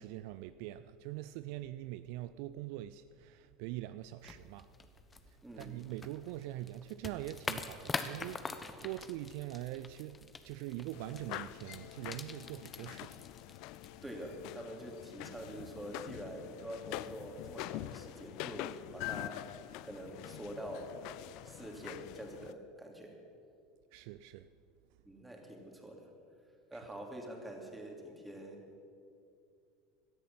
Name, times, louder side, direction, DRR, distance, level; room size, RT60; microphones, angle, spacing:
voice 1, 0.0-4.7 5.3-13.2 23.9-24.5 26.7-26.8, right 14 dB, 60° right, 0.4 m, -43 dB
sound 1, 4.2-14.4, left 4 dB, 20° left, 1.1 m, -45 dB
voice 2, 5.4-5.7 14.0-19.5 19.8-23.2 25.0-26.1 26.7-28.7, equal, 10° right, 3.2 m, -46 dB
sound 2, 10.9-22.5, left 16 dB, 55° left, 0.4 m, -45 dB
17.5 x 13.0 x 5.7 m
figure-of-eight pair, 75°, 0 cm